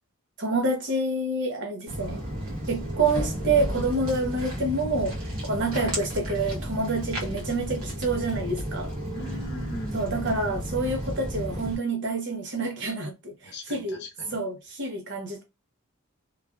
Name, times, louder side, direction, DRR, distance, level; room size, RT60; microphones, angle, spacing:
voice 1, 0.4-2.2 2.7-5.2 5.4-8.9 9.9-14.0 14.3-15.4, right 2 dB, 55° right, 0.8 m, -28 dB
Walk footsteps, 1.9-11.8, equal, 80° right, 1.0 m, -33 dB
voice 2, 9.1-10.4 13.4-14.4, equal, 50° left, 0.7 m, -39 dB
3.1 x 2.4 x 2.3 m
head